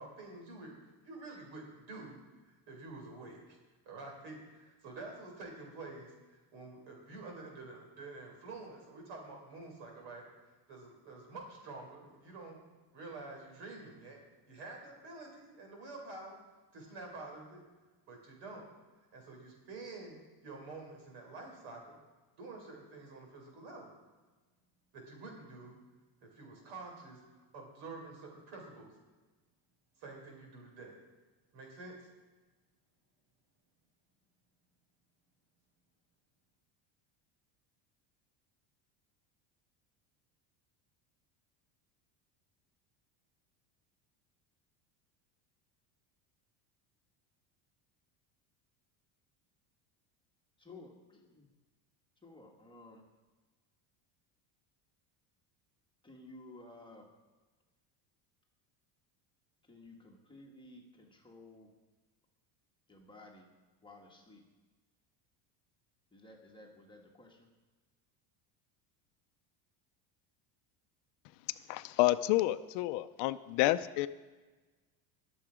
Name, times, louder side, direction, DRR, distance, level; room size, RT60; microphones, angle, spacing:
voice 1, 0.0-2.2 2.4-3.6 3.8-12.6 12.9-14.2 14.5-16.4 16.7-17.6 18.1-18.7 19.1-20.2 20.4-22.0 22.4-23.9 24.9-25.8 26.2-28.9 30.0-30.9 31.5-32.1, right 3 dB, 65° right, 1 dB, 5.0 m, -48 dB
voice 2, 50.6-51.5 52.2-53.0 56.0-57.1 59.7-61.7 62.9-63.5 63.8-64.4 66.1-67.5, left 2 dB, 10° left, 0 dB, 1.4 m, -54 dB
voice 3, 71.7-74.1, left 16 dB, 60° left, 13 dB, 0.6 m, -29 dB
21.0 x 7.2 x 5.0 m, 1.3 s
cardioid pair, 160°, 47 cm